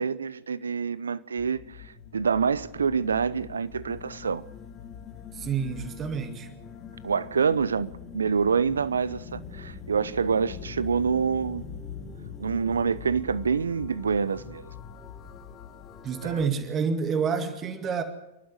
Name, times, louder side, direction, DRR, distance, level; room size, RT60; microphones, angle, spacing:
voice 1, 0.0-1.6 2.1-4.4 7.0-11.6 12.4-14.6 16.2-16.3, right 6 dB, 80° right, 0.7 m, -26 dB
sound 1, 1.4-16.5, left 6 dB, 30° left, 3.0 m, -43 dB
voice 2, 5.3-6.5 16.0-18.0, right 6 dB, 30° right, 2.1 m, -28 dB
28.5 x 12.0 x 8.0 m
figure-of-eight pair, 95°, 0 cm